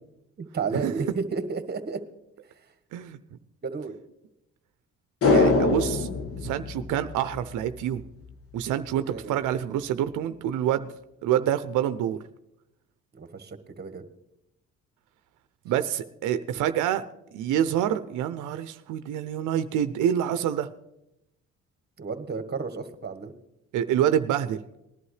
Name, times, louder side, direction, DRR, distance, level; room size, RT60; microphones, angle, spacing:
voice 1, 0.4-2.0 3.6-4.0 8.9-9.3 13.1-14.0 22.0-23.3, right 5 dB, 35° right, 8 dB, 1.4 m, -32 dB
sound 1, 5.2-7.7 8.0-8.1, left 3 dB, 50° left, 1.4 m, -24 dB
voice 2, 5.2-6.1 6.4-8.0 8.5-10.9 11.2-12.2 15.7-17.0 17.3-20.7 23.7-24.6, right 10 dB, 85° right, 11 dB, 0.6 m, -27 dB
19.0 x 11.0 x 3.3 m, 0.86 s
cardioid pair, 90°, 30 cm